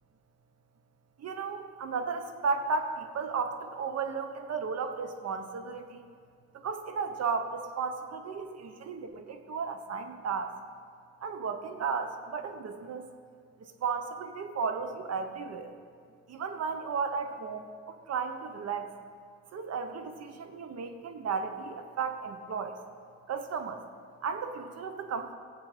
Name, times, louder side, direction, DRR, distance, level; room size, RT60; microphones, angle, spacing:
voice 1, 1.2-6.0 6.6-10.5 11.2-13.1 13.6-15.7 16.3-18.9 19.5-22.8 23.3-23.8 24.2-25.3, right 5 dB, 55° right, 7 dB, 1.2 m, -34 dB
18.0 x 8.0 x 5.1 m, 2.1 s
cardioid pair, 90°, 30 cm